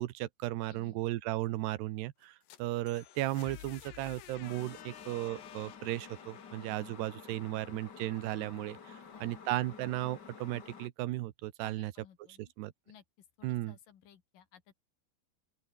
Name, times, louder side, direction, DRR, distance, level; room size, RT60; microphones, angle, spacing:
voice 1, 0.0-11.9 12.4-12.7 13.4-13.8, right 16 dB, 90° right, 3.1 m, -35 dB
voice 2, 0.7-1.0 9.0-9.4 11.6-12.5 12.9-13.0 13.4-14.7, left 9 dB, 60° left, 3.5 m, -57 dB
sound 1, 2.2-8.1, left 12 dB, 80° left, 3.9 m, -53 dB
sound 2, 4.4-10.9, left 6 dB, 40° left, 1.6 m, -51 dB
open air
omnidirectional pair, 4.7 m